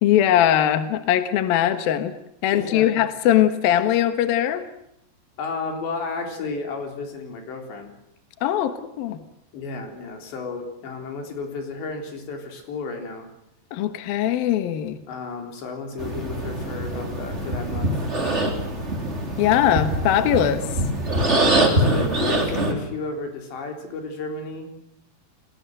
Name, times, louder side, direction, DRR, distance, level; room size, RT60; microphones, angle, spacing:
voice 1, 0.0-2.1 2.4-4.6 8.4-9.2 13.7-15.0 19.4-20.7, left 11 dB, 65° left, 9 dB, 2.9 m, -20 dB
voice 2, 2.5-3.1 5.4-7.9 9.5-13.3 15.1-18.1 21.2-24.8, left 4 dB, 85° left, 4 dB, 6.1 m, -32 dB
sound 1, 16.0-22.7, right 1 dB, 15° right, 3.6 m, -24 dB
29.5 x 20.5 x 7.9 m, 0.79 s
omnidirectional pair, 4.9 m